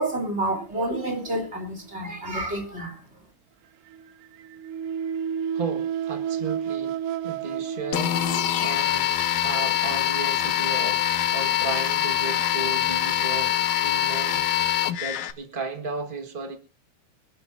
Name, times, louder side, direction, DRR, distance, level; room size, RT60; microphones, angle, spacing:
voice 1, 0.0-3.0, right 1 dB, 20° right, 3.6 m, -29 dB
sound 1, 0.9-1.9 3.9-9.0 9.7-9.9 10.7-10.8, right 8 dB, 90° right, 2.4 m, -31 dB
voice 2, 5.5-8.2 8.6-16.6, right 4 dB, 50° right, 0.6 m, -35 dB
sound 2, 7.9-15.3, left 11 dB, 75° left, 2.3 m, -24 dB
25.0 x 12.5 x 2.6 m
omnidirectional pair, 3.6 m